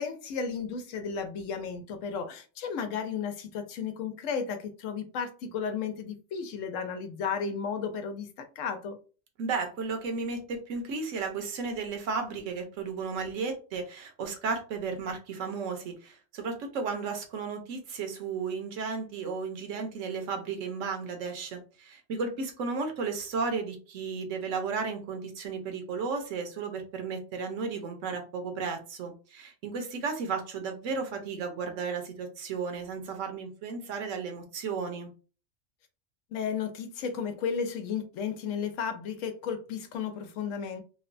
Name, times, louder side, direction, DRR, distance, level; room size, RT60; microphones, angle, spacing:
voice 1, 0.0-8.3 8.6-9.0 36.3-40.8, left 6 dB, 85° left, 7 dB, 1.0 m, -33 dB
voice 2, 9.4-35.1, right 4 dB, 80° right, 4 dB, 1.1 m, -34 dB
3.0 x 2.1 x 2.5 m, 0.36 s
omnidirectional pair, 1.3 m